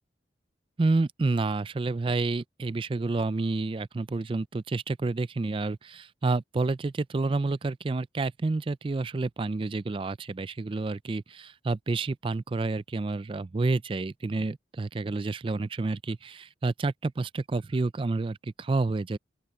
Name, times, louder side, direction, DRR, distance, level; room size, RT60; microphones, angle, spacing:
voice 1, 0.8-19.2, right 3 dB, 30° right, 0.3 m, -29 dB
open air
head